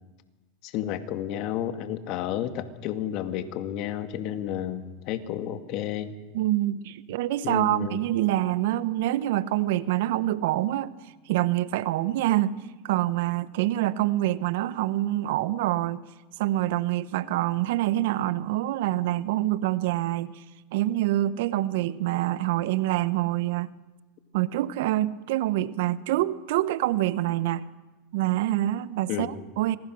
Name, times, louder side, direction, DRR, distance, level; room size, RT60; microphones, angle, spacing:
voice 1, 0.6-6.1 7.4-8.1 29.1-29.4, left 11 dB, 55° left, 8 dB, 2.2 m, -31 dB
voice 2, 6.3-10.9 11.3-12.6 12.8-16.0 16.4-20.3 20.7-23.7 24.3-27.6 28.1-29.8, right 15 dB, 70° right, 15 dB, 1.0 m, -26 dB
26.5 x 21.0 x 6.3 m, 1.2 s
hypercardioid pair, 105°, 0 cm